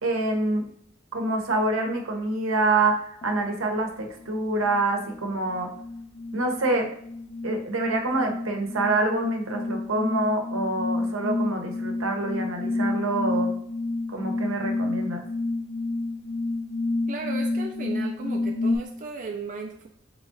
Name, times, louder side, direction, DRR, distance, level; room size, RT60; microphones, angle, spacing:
voice 1, 0.0-0.6 1.1-5.7 6.3-6.9 7.4-13.5 14.1-15.2, right 2 dB, 85° right, 3 dB, 0.8 m, -26 dB
sound 1, 3.2-3.5 4.0-18.8, left 2 dB, 35° left, 0.4 m, -30 dB
voice 2, 17.1-19.9, right 4 dB, 40° right, 1 dB, 0.4 m, -35 dB
3.6 x 3.1 x 3.8 m, 0.67 s
head